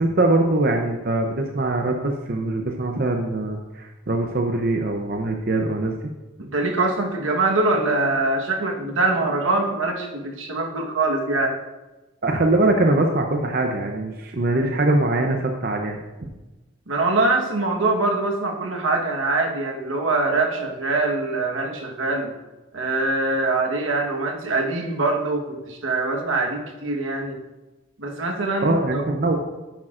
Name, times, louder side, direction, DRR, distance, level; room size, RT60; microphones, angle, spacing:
voice 1, 0.0-5.9 12.2-16.0 28.6-29.4, right 2 dB, 50° right, 3 dB, 0.7 m, -22 dB
voice 2, 6.4-11.6 16.9-22.3 22.7-27.4 28.0-29.0, right 2 dB, 85° right, 2 dB, 1.3 m, -23 dB
10.5 x 8.5 x 2.5 m, 1.1 s
head